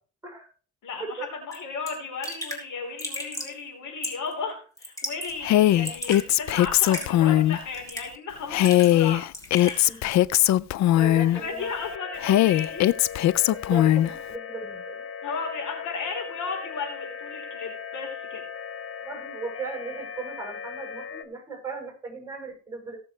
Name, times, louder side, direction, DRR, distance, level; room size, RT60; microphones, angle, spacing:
voice 1, 0.8-9.2 9.6-10.1 11.3-12.8 15.2-18.4, left 4 dB, 80° left, 1 dB, 3.9 m, -35 dB
Raindrop / Drip, 1.5-1.6 1.9-2.0 2.2-2.6 3.0-3.5 4.0-4.3 4.8-5.3 5.6-6.2 6.8-7.1 7.7-8.2 8.5-9.0 9.3-9.8, left 1 dB, 10° left, 3.6 m, -34 dB
Female speech woman speaking, 5.4-7.6 8.5-11.4 12.2-14.1, left 13 dB, 65° left, 0.5 m, -20 dB
voice 2, 10.9-11.7 13.5-15.0 19.0-23.0, right 3 dB, 10° right, 1 dB, 7.2 m, -37 dB
sound 1, 11.6-21.3, left 7 dB, 50° left, 1.2 m, -38 dB
18.5 x 7.0 x 3.2 m, 0.38 s
cardioid pair, 90°, 30 cm